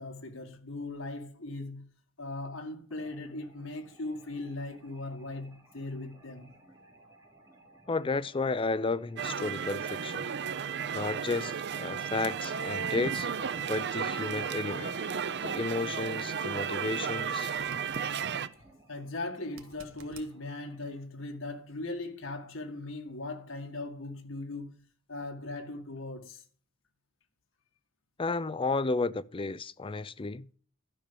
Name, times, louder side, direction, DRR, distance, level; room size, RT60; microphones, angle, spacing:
voice 1, 0.0-1.9 2.2-6.6 13.5-13.6 18.6-24.8 25.1-26.4, left 2 dB, 70° left, 1.9 m, -39 dB
sound 1, 2.9-21.0, right 1 dB, 15° right, 3.2 m, -59 dB
voice 2, 7.9-10.3 10.9-13.3 13.7-15.0 15.4-17.6 28.2-30.5, left 3 dB, 25° left, 0.5 m, -32 dB
sound 2, 9.2-18.5, right 7 dB, 60° right, 0.6 m, -34 dB
sound 3, 17.6-18.1 19.5-20.3 23.3-23.4, right 5 dB, 85° right, 1.4 m, -52 dB
12.5 x 5.7 x 6.9 m
head